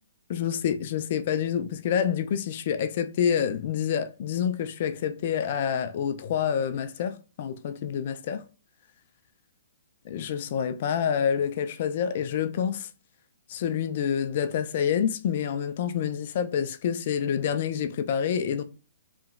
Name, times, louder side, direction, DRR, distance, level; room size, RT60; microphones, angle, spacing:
voice 1, 0.3-8.4 10.0-12.9 13.5-18.6, left 8 dB, 50° left, 0.3 m, -27 dB
2.9 x 2.4 x 2.4 m
hypercardioid pair, 130°, 0 cm